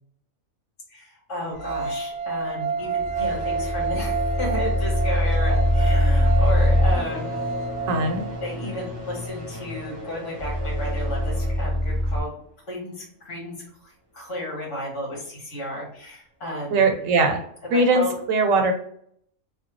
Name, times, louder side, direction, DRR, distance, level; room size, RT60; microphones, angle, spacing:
voice 1, 0.9-7.5 8.4-12.3 12.7-13.5 13.8-16.8 17.7-18.1, equal, 65° left, -3 dB, 1.7 m, -33 dB
sound 1, 1.3-2.6 2.9-13.2 14.1-14.2 14.9-15.0 15.6-15.7, left 1 dB, 25° right, 0.8 m, -39 dB
sound 2, 1.6-8.7, right 4 dB, 50° right, 0.4 m, -30 dB
sound 3, 2.8-12.2, left 1 dB, 35° left, 1.2 m, -24 dB
voice 2, 7.9-8.2 16.7-17.4 17.7-18.7, right 3 dB, 90° right, 4 dB, 1.1 m, -20 dB
3.3 x 2.3 x 3.0 m, 0.66 s
omnidirectional pair, 1.3 m